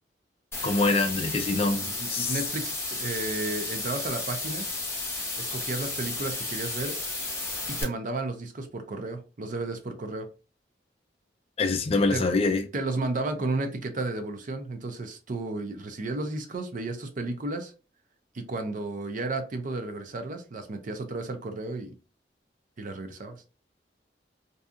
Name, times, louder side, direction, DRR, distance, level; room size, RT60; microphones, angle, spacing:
sound 1, 0.5-7.8, left 2 dB, 15° left, 0.9 m, -33 dB
voice 1, 0.6-2.4 11.6-12.6, left 3 dB, 35° left, 7 dB, 0.4 m, -25 dB
voice 2, 1.8-4.7 5.4-6.9 7.7-10.3 12.1-12.2 12.7-17.7 18.3-21.9 22.8-23.4, right 2 dB, 50° right, 6 dB, 0.5 m, -33 dB
2.7 x 2.3 x 2.4 m, 0.33 s
head